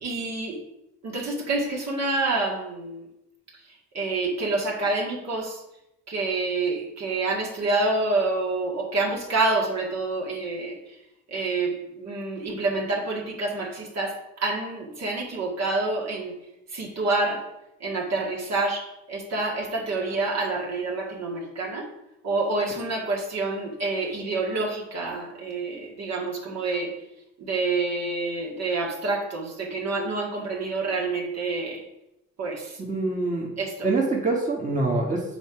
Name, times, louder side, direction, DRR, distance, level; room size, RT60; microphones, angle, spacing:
voice 1, 0.0-0.6 1.0-3.1 3.9-5.6 6.1-10.7 11.3-11.7 12.0-14.1 14.4-16.3 16.7-17.4 17.8-18.8 19.1-21.9 22.2-26.9 27.4-31.8 32.4-32.7 33.6-33.7, right 3 dB, 60° right, -1 dB, 1.9 m, -27 dB
voice 2, 32.9-33.5 33.8-35.2, right 3 dB, 25° right, -1 dB, 1.6 m, -25 dB
7.0 x 4.3 x 4.8 m, 0.86 s
cardioid pair, 90°, 30 cm